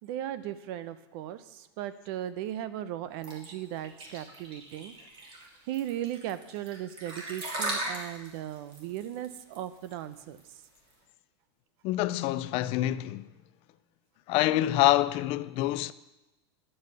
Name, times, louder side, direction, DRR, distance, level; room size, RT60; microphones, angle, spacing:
voice 1, 0.0-5.4 5.6-10.4, right 12 dB, 55° right, 0.8 m, -37 dB
sound 1, 3.2-10.9, right 2 dB, 35° right, 3.1 m, -38 dB
voice 2, 11.8-13.3 14.3-15.9, left 15 dB, 40° left, 0.4 m, -26 dB
11.0 x 5.6 x 7.9 m
supercardioid pair, 130°, 15 cm